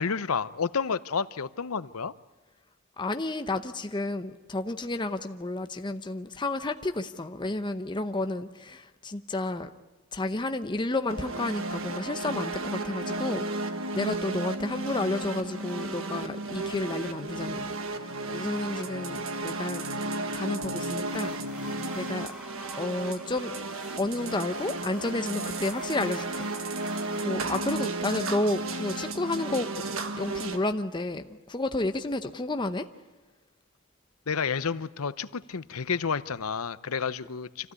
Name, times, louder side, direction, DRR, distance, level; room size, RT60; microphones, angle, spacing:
voice 1, 0.0-2.1 34.3-37.7, left 5 dB, 80° left, 15 dB, 0.7 m, -30 dB
voice 2, 3.0-9.7 10.1-21.4 21.9-22.3 22.8-23.5 24.0-26.5 27.2-29.7 30.2-32.9, left 2 dB, 20° left, 7 dB, 0.8 m, -31 dB
sound 1, 11.1-30.6, right 2 dB, 65° right, 1.5 m, -33 dB
sound 2, 21.0-27.2, left 2 dB, 5° right, 4.0 m, -49 dB
26.0 x 16.0 x 9.6 m, 1.2 s
head